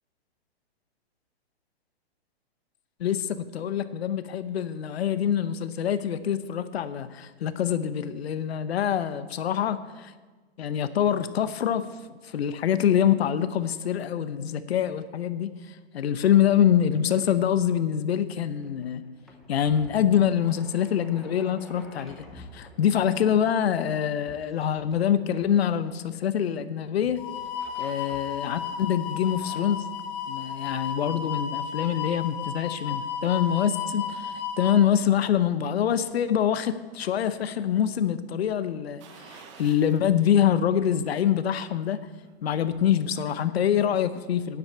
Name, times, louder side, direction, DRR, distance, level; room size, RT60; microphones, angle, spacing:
voice 1, 3.0-10.1 10.6-11.8 12.2-19.0 19.5-27.2 27.8-29.8 30.3-42.0 42.4-44.6, left 9 dB, 75° left, 12 dB, 0.8 m, -25 dB
sound 1, 18.3-26.6 27.0-28.6 29.1-29.7, left 1 dB, ahead, 0.8 m, -51 dB
sound 2, 27.2-34.8, left 7 dB, 25° left, 1.0 m, -33 dB
sound 3, 39.0-40.1 40.5-40.6 42.1-42.9 43.2-43.3, right 6 dB, 30° right, 1.0 m, -50 dB
9.6 x 7.9 x 8.6 m, 1.3 s
hypercardioid pair, 165°, 32 cm